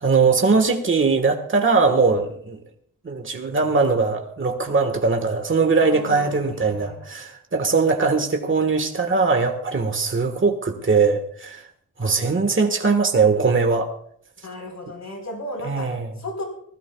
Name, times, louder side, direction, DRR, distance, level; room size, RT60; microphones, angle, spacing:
voice 1, 0.0-2.6 3.0-11.6 12.0-13.9 15.6-16.1, right 4 dB, 35° right, 5 dB, 1.5 m, -20 dB
voice 2, 5.8-7.2 7.7-7.9 12.0-12.3 14.4-16.4, left 1 dB, 55° left, 2 dB, 4.6 m, -36 dB
25.0 x 16.5 x 2.4 m, 0.64 s
wide cardioid pair, 145°, 33 cm